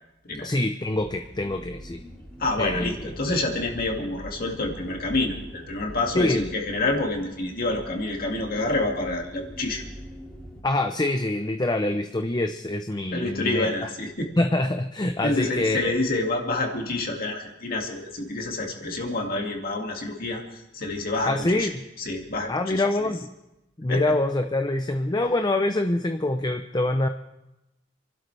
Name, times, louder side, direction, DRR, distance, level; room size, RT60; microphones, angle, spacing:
voice 1, 0.4-2.0 2.6-2.9 6.1-6.5 10.6-13.7 14.4-16.0 21.3-21.7 22.5-23.3 23.8-27.1, left 2 dB, 20° left, 6 dB, 0.7 m, -25 dB
sound 1, 1.0-10.6, equal, 5° left, 2.7 m, -43 dB
voice 2, 2.4-9.8 13.1-14.3 15.2-21.7 22.0-23.1 23.9-24.1, left 2 dB, 50° left, 1 dB, 2.3 m, -28 dB
27.5 x 12.0 x 3.4 m, 0.92 s
head